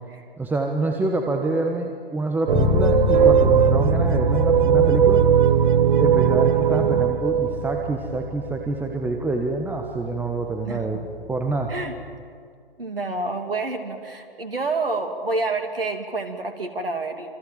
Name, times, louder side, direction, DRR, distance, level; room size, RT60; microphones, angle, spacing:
voice 1, 0.4-5.2 6.0-11.8, right 3 dB, 5° right, 3 dB, 1.4 m, -26 dB
Bass guitar, 2.5-12.2, left 14 dB, 20° left, 0.7 m, -30 dB
sound 1, 2.5-8.6, right 9 dB, 55° right, 0.9 m, -19 dB
voice 2, 12.8-17.3, right 3 dB, 75° right, 6 dB, 3.0 m, -28 dB
27.5 x 27.5 x 7.6 m, 2.2 s
figure-of-eight pair, 120°, 29 cm